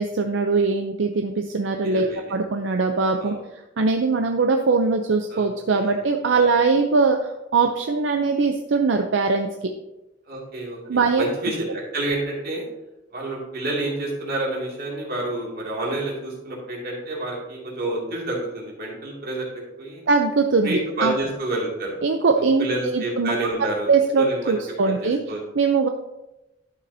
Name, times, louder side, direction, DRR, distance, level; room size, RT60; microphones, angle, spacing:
voice 1, 0.0-3.3 3.8-9.7 10.9-11.3 20.1-21.1 22.0-25.2 25.5-25.9, right 4 dB, 75° right, 4 dB, 0.5 m, -21 dB
voice 2, 1.8-2.3 3.2-3.4 5.3-6.5 10.3-12.6 13.1-19.5 19.8-20.0 20.6-22.0 22.4-23.9 24.2-24.6 24.8-25.4, right 2 dB, 55° right, -3 dB, 2.4 m, -29 dB
11.5 x 6.7 x 2.7 m, 0.96 s
head